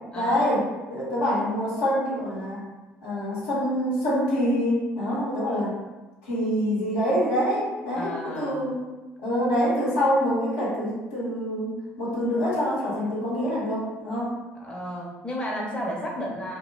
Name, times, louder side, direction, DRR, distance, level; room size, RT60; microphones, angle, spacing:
voice 1, 0.1-2.7 3.0-5.8 6.2-8.8 9.2-14.4, equal, 75° left, -7 dB, 0.9 m, -26 dB
voice 2, 7.9-8.6 14.6-16.6, equal, 15° left, -3 dB, 0.7 m, -33 dB
2.3 x 2.1 x 3.1 m, 1.2 s
figure-of-eight pair, 55°, 7 cm